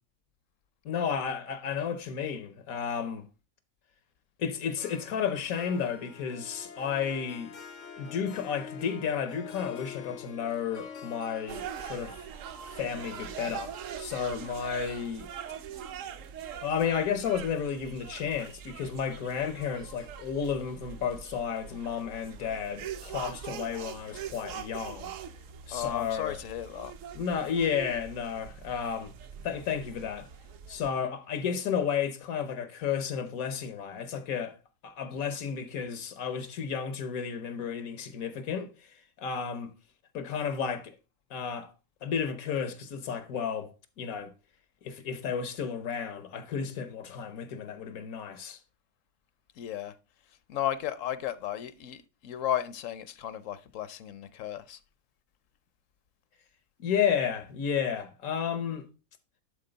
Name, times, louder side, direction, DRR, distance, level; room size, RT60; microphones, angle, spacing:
voice 1, 0.8-3.2 4.4-7.5 8.0-12.2 12.8-13.7 14.0-15.3 16.6-25.1 25.7-26.4 27.1-29.1 29.4-30.3 30.7-34.6 34.8-38.7 39.2-39.7 40.1-40.9 41.3-41.7 42.0-43.7 44.0-44.3 44.8-48.6 56.8-58.9, left 7 dB, 90° left, 1.4 m, -32 dB
Harp, 4.8-16.2, left 7 dB, 55° left, 0.5 m, -47 dB
sound 1, 11.5-30.9, right 8 dB, 70° right, 1.0 m, -43 dB
voice 2, 25.7-26.9 49.6-49.9 50.5-54.8, left 11 dB, 70° left, 0.9 m, -34 dB
11.0 x 3.9 x 3.9 m
omnidirectional pair, 1.4 m